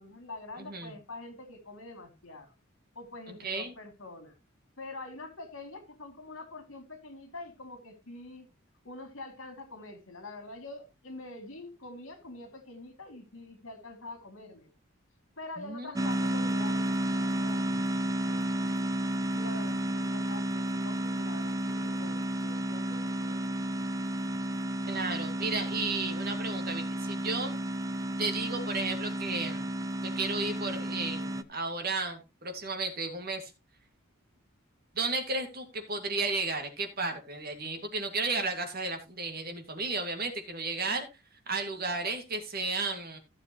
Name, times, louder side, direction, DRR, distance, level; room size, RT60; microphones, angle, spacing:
voice 1, 0.0-2.5 2.9-4.3 4.8-8.5 8.8-14.7 15.4-18.9 19.3-23.7, left 2 dB, 75° left, 2.8 m, -45 dB
voice 2, 0.6-0.9 3.3-3.7 15.6-16.1 24.9-27.6 28.2-29.7 30.0-33.5 34.9-41.1 41.5-43.2, right 3 dB, 45° right, 2.3 m, -33 dB
sound 1, 16.0-31.4, right 1 dB, 15° right, 0.5 m, -32 dB
15.0 x 7.2 x 3.1 m
head